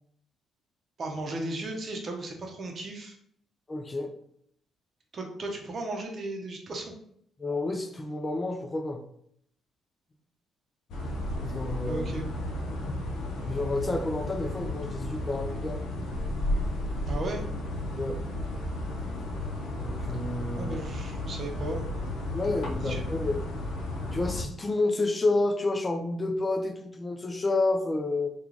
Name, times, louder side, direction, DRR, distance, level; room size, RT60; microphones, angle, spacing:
voice 1, 1.0-3.1 5.1-6.9 11.9-12.3 17.1-17.4 20.6-21.8 22.8-23.0, right 2 dB, 45° right, 3 dB, 0.7 m, -35 dB
voice 2, 3.7-4.1 7.4-9.0 11.4-12.1 13.4-15.8 17.9-18.1 19.8-20.8 22.3-23.4 24.1-28.3, left 2 dB, 25° left, 5 dB, 0.5 m, -29 dB
sound 1, 10.9-24.4, left 1 dB, 75° left, 0.6 m, -33 dB
3.0 x 2.4 x 3.8 m, 0.69 s
cardioid pair, 90°, 0 cm